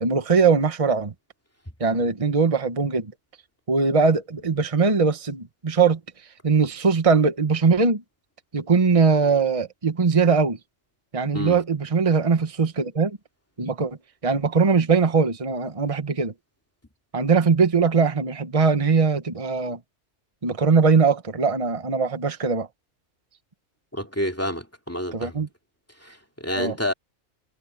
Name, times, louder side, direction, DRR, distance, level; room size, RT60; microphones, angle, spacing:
voice 1, 0.0-1.1 1.8-3.1 3.7-6.0 6.4-8.0 8.5-10.6 11.1-13.2 13.6-14.0 14.2-16.3 17.1-19.8 20.4-22.7 25.1-25.5 26.5-26.8, right 5 dB, 25° right, 1.3 m, -21 dB
voice 2, 23.9-25.4 26.0-26.9, equal, 10° left, 2.5 m, -29 dB
omnidirectional pair, 1.3 m